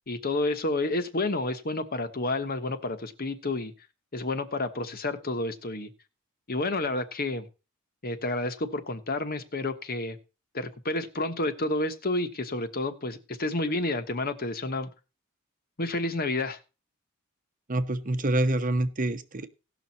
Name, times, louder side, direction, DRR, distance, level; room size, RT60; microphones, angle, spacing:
voice 1, 0.1-3.7 4.1-5.9 6.5-7.5 8.0-10.2 10.5-14.9 15.8-16.6, left 2 dB, 45° left, 10 dB, 1.2 m, -30 dB
voice 2, 17.7-19.5, right 1 dB, 40° right, 10 dB, 1.0 m, -26 dB
17.5 x 6.2 x 4.1 m, 0.31 s
head